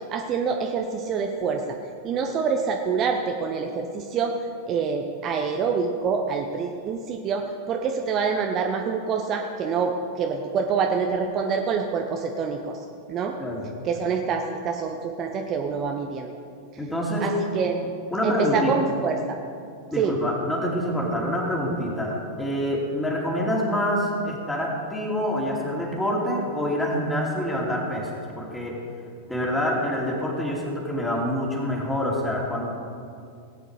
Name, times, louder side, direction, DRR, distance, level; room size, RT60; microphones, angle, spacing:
voice 1, 0.1-1.8 2.0-4.3 4.7-12.8 13.1-13.3 13.8-16.3 17.2-17.9 18.2-19.4 20.0-20.2, right 5 dB, 30° right, 3 dB, 0.9 m, -26 dB
voice 2, 16.8-17.3 18.1-18.7 19.9-28.1 28.4-28.8 29.3-32.6, equal, 10° left, -3 dB, 2.9 m, -26 dB
17.5 x 9.0 x 4.9 m, 2.4 s
figure-of-eight pair, 90°, 0 cm